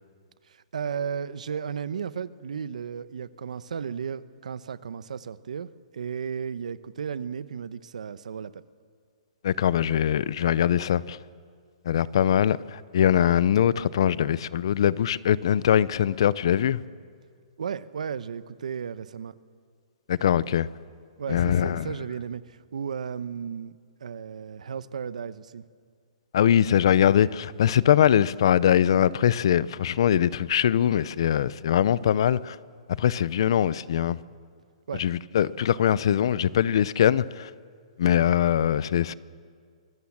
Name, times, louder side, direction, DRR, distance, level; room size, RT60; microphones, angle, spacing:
voice 1, 0.5-5.7 5.9-8.6 17.6-19.3 21.2-25.6 34.9-35.0, right 7 dB, 85° right, 0.9 m, -34 dB
voice 2, 9.4-11.2 11.9-16.8 20.1-20.7 21.3-21.9 26.3-32.6 32.9-34.2 35.0-37.5 38.0-39.1, left 10 dB, 45° left, 0.5 m, -22 dB
24.5 x 20.5 x 7.3 m
hypercardioid pair, 180°, 4 cm